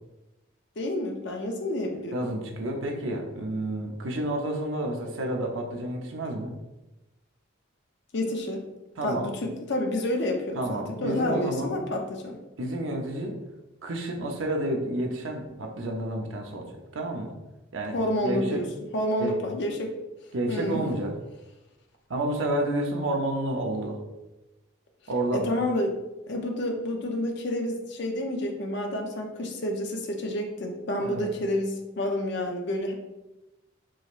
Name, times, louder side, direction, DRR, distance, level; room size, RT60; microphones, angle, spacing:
voice 1, 0.8-2.3 8.1-8.7 9.0-12.4 17.9-18.6 18.9-19.9 20.5-20.8 25.3-26.0 26.3-32.9, left 1 dB, 60° left, 2 dB, 0.6 m, -29 dB
voice 2, 2.1-6.6 9.0-9.3 10.5-11.9 12.6-13.4 13.8-16.7 16.9-17.3 17.7-18.0 18.2-18.6 19.2-19.4 20.3-21.1 22.1-24.0 25.1-25.5 31.0-31.3, right 1 dB, 75° right, 2 dB, 0.7 m, -30 dB
4.8 x 3.0 x 2.5 m, 1.0 s
head